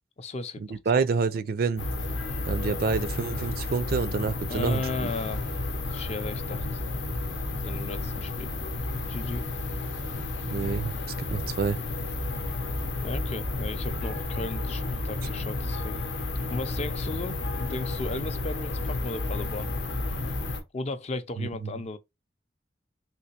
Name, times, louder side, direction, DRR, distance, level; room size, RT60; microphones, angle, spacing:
voice 1, 0.2-0.8 4.5-6.8 7.6-8.5 9.1-9.4 13.0-16.0 16.5-19.7 20.7-22.0, left 3 dB, 35° left, 0.4 m, -35 dB
voice 2, 0.7-1.8 2.5-5.1 10.5-11.8 21.4-21.7, right 5 dB, 55° right, 0.4 m, -28 dB
sound 1, 1.8-20.6, left 2 dB, 90° left, 0.8 m, -31 dB
3.3 x 3.0 x 2.8 m
head